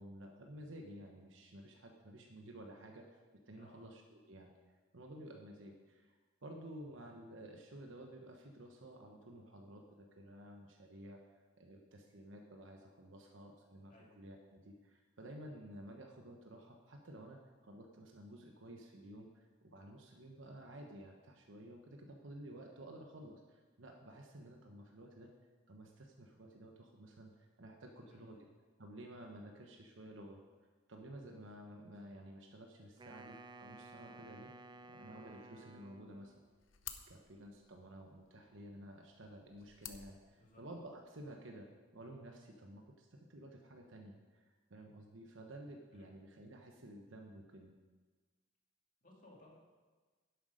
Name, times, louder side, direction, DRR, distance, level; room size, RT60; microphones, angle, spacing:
voice 1, 0.0-4.5 4.9-11.2 11.6-25.3 25.7-28.4 28.8-30.4 30.9-36.5 37.1-41.7 41.9-47.8, right 1 dB, 80° right, 2 dB, 1.1 m, -53 dB
voice 2, 3.5-3.9 13.9-14.1 27.9-28.5 40.4-40.6 45.9-46.1 49.0-49.5, left 1 dB, 45° left, -3 dB, 2.6 m, -61 dB
Wind instrument woodwind instrument, 33.0-36.5, right 2 dB, 25° right, 0.5 m, -55 dB
sound 1, 36.1-41.1, left 9 dB, 90° left, 0.8 m, -55 dB
10.5 x 8.0 x 5.1 m, 1.4 s
head